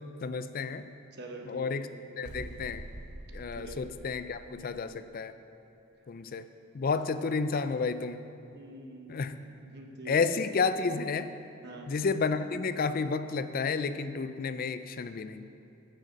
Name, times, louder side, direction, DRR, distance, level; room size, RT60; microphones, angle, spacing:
voice 1, 0.2-0.9 1.5-1.9 2.2-2.8 3.3-5.3 6.1-6.5 6.7-8.2 9.1-9.3 10.1-11.3 11.9-15.5, left 4 dB, 40° left, 12 dB, 0.4 m, -31 dB
voice 2, 1.1-1.8 3.6-3.8 4.5-4.9 8.5-10.3 11.6-11.9, right 2 dB, 50° right, 2 dB, 1.1 m, -46 dB
sound 1, 2.2-5.0, right 1 dB, 80° right, 0.8 m, -45 dB
15.0 x 6.6 x 5.3 m, 2.7 s
head